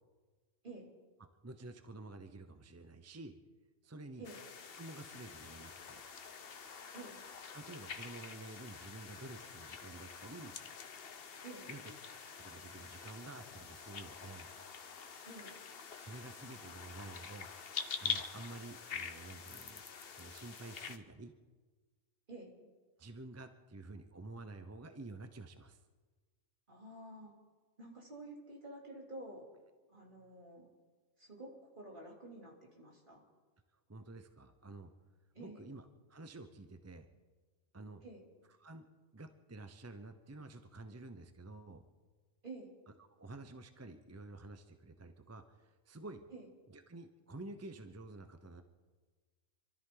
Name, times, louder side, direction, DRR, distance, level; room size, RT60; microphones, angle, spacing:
voice 1, 1.4-3.4 3.8-4.3 4.8-6.1 7.5-10.6 11.7-11.9 12.4-14.5 16.0-17.5 18.0-21.3 23.0-25.8 33.9-34.9 35.4-37.1 37.7-38.0 38.6-38.9 39.1-41.8 43.2-46.2 46.7-48.6, right 2 dB, 20° right, 8 dB, 0.5 m, -50 dB
sound 1, 4.2-21.0, left 6 dB, 50° left, 1.0 m, -46 dB
voice 2, 26.7-27.3 27.8-29.5 29.9-30.7 31.2-33.2 35.3-35.7 38.0-38.2 42.4-42.7 46.3-46.5, right 2 dB, 40° right, -2 dB, 3.4 m, -50 dB
26.5 x 13.5 x 3.9 m, 1.4 s
omnidirectional pair, 1.3 m